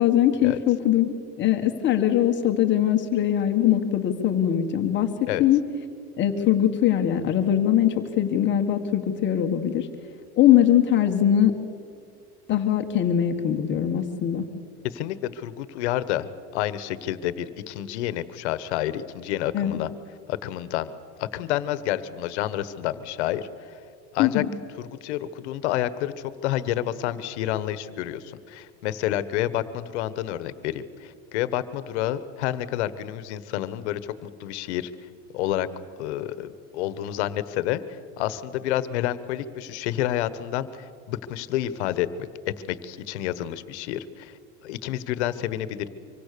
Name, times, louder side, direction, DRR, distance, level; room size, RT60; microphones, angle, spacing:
voice 1, 0.0-5.6 6.2-9.9 10.4-11.5 12.5-14.5 19.5-19.8 24.2-24.5, left 11 dB, 35° left, 5 dB, 1.5 m, -21 dB
voice 2, 14.8-16.3 16.5-19.9 20.3-20.9 21.2-23.8 24.1-24.4 24.8-34.9 35.3-35.7 36.0-37.8 38.2-44.3 44.6-45.9, left 13 dB, 90° left, 14 dB, 1.3 m, -29 dB
25.5 x 24.0 x 6.8 m, 2.3 s
supercardioid pair, 150°, 33 cm